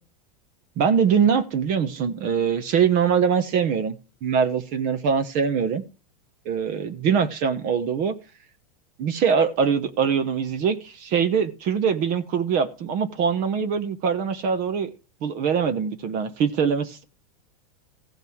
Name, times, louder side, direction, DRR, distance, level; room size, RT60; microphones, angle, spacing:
voice 1, 0.8-4.0 4.2-5.8 6.4-8.1 9.0-14.9 15.2-17.0, right 6 dB, 45° right, 1.2 m, -23 dB
15.0 x 5.3 x 6.3 m
supercardioid pair, 125°, 20 cm